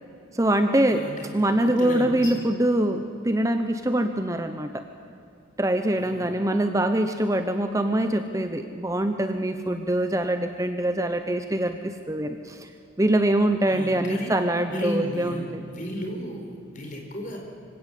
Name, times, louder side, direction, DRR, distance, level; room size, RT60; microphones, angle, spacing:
voice 1, 0.3-1.0 1.3-4.8 5.6-12.7 13.0-15.3, right 1 dB, 15° right, 7 dB, 0.8 m, -24 dB
voice 2, 0.9-1.3 1.6-2.4 5.9-6.4 13.7-14.3 14.7-17.4, equal, 40° left, 1 dB, 4.5 m, -34 dB
25.0 x 16.5 x 8.4 m, 2.5 s
head